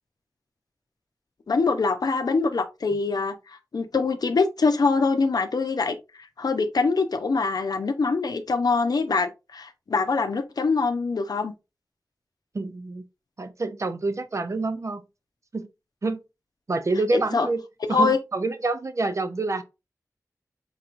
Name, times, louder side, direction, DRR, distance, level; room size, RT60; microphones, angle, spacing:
voice 1, 1.5-11.5 17.1-17.5 17.9-18.2, left 4 dB, 80° left, 0.6 m, -24 dB
voice 2, 12.5-13.0 13.4-15.0 15.5-15.7 16.0-16.2 16.7-17.6 17.9-19.6, right 3 dB, 50° right, 0.6 m, -27 dB
4.5 x 4.0 x 2.5 m
wide cardioid pair, 70°, 7 cm